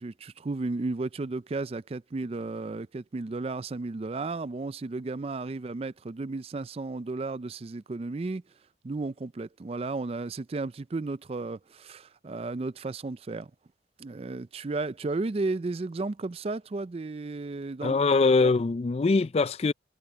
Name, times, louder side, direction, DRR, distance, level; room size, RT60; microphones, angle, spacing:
voice 1, 0.0-8.4 8.8-13.5 14.0-18.0, right 3 dB, 35° right, 0.4 m, -33 dB
voice 2, 17.8-19.7, left 3 dB, 35° left, 0.4 m, -23 dB
head